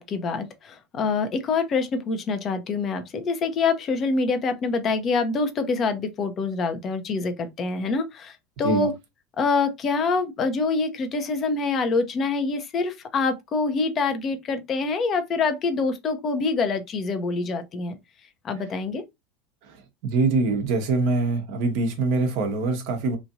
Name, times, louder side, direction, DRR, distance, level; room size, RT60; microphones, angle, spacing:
voice 1, 0.0-8.9 9.4-18.0 18.4-19.0, left 4 dB, 40° left, 0.7 m, -25 dB
voice 2, 20.0-23.2, right 3 dB, 65° right, 1.1 m, -24 dB
3.1 x 2.6 x 2.6 m
hypercardioid pair, 80°, 0 cm